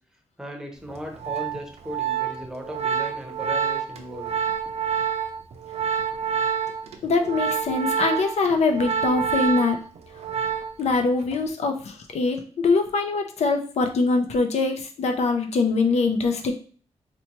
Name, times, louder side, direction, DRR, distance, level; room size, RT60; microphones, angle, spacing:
voice 1, 0.4-4.3, equal, 5° right, 3 dB, 0.8 m, -37 dB
Organ, 0.9-10.9 11.2-11.5, right 7 dB, 70° right, 0.5 m, -28 dB
voice 2, 7.0-9.8 10.8-16.5, left 3 dB, 75° left, 5 dB, 0.5 m, -23 dB
4.2 x 2.2 x 2.9 m, 0.42 s
wide cardioid pair, 110°, 11 cm